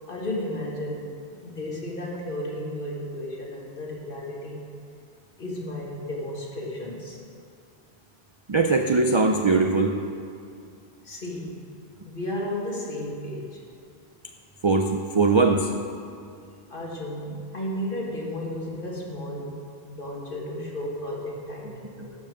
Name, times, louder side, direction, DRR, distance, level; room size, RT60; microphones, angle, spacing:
voice 1, 0.1-1.1 1.4-4.7 5.4-7.2 11.0-11.6 12.0-13.6 16.7-19.5 19.9-22.1, left 1 dB, 55° left, -2 dB, 1.9 m, -33 dB
voice 2, 8.5-9.9 14.6-15.7, right 3 dB, 45° right, 4 dB, 0.3 m, -20 dB
12.5 x 5.4 x 6.4 m, 2.4 s
omnidirectional pair, 1.1 m